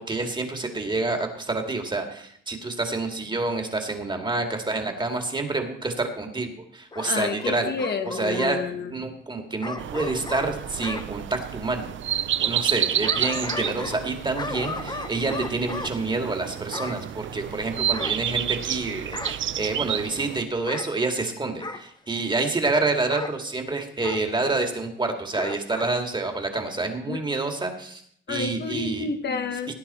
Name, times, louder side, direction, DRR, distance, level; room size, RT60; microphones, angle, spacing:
voice 1, 0.0-7.7 8.0-8.6 8.9-28.0 28.3-29.1 29.7-29.8, right 3 dB, 20° right, 4 dB, 2.2 m, -28 dB
Bark / Growling, 6.9-8.5 9.6-11.1 12.7-14.1 14.4-15.9 16.7-17.0 17.9-18.7 19.1-19.5 20.6-20.9 21.6-21.9 23.1-23.4 24.0-24.2 25.3-25.9 26.3-26.4, left 3 dB, 20° left, 0.9 m, -35 dB
voice 2, 7.0-8.9 27.1-27.2 28.3-29.7, left 5 dB, 55° left, 6 dB, 1.3 m, -30 dB
sound 1, 9.8-20.4, right 10 dB, 65° right, 0.6 m, -30 dB
18.0 x 10.0 x 4.3 m, 0.64 s
cardioid pair, 120°, 21 cm